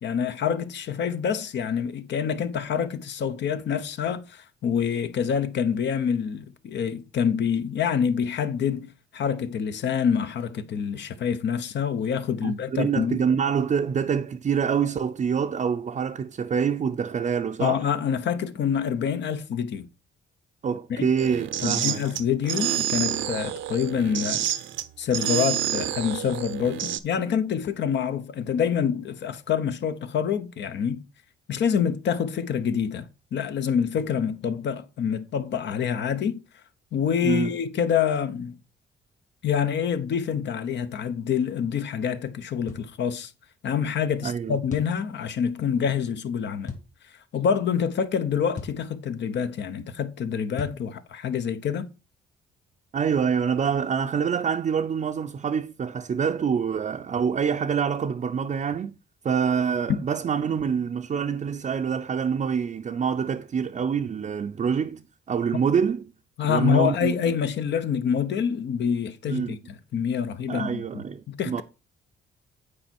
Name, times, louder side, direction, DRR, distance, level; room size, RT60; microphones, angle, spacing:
voice 1, 0.0-13.2 17.6-19.9 20.9-21.1 21.6-24.4 25.0-31.0 31.5-33.0 33.3-36.4 36.9-38.6 39.4-43.3 43.6-46.7 47.3-51.9 66.4-71.6, left 7 dB, 65° left, 0.9 m, -26 dB
voice 2, 12.4-17.9 20.6-22.1 37.2-37.5 44.2-44.6 52.9-59.0 59.2-65.0 65.3-66.0 66.5-67.1 69.3-69.6 70.5-71.6, right 7 dB, 40° right, 0.6 m, -26 dB
sound 1, 21.2-27.0, right 11 dB, 75° right, 0.7 m, -28 dB
sound 2, 42.7-42.9 44.7-45.0 46.7-46.9 48.6-48.8 50.6-50.9, left 4 dB, 40° left, 1.9 m, -36 dB
8.7 x 4.6 x 4.4 m
cardioid pair, 90°, 20 cm